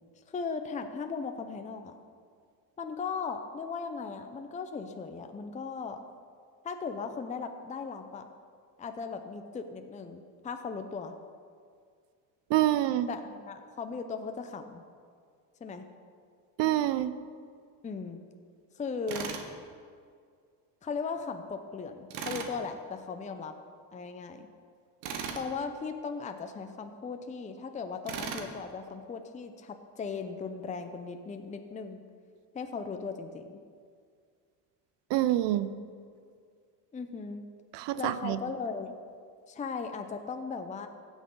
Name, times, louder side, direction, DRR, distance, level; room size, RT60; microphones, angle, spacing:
voice 1, 0.3-2.0 2.8-6.0 6.6-8.3 8.8-11.2 13.1-14.8 15.6-15.9 17.8-18.2 18.8-19.3 20.8-23.5 23.9-24.5 25.3-32.0 32.5-33.6 36.9-37.4 38.0-38.9 39.5-40.9, left 5 dB, 15° left, 7 dB, 0.6 m, -37 dB
voice 2, 12.5-13.1 16.6-17.1 35.1-35.7 37.7-38.4, right 14 dB, 65° right, 14 dB, 0.7 m, -26 dB
Tools, 19.1-19.5 22.1-22.5 25.0-25.5 28.1-28.5, right 7 dB, 80° right, 1.2 m, -37 dB
16.0 x 6.3 x 3.8 m, 2.1 s
cardioid pair, 105°, 46 cm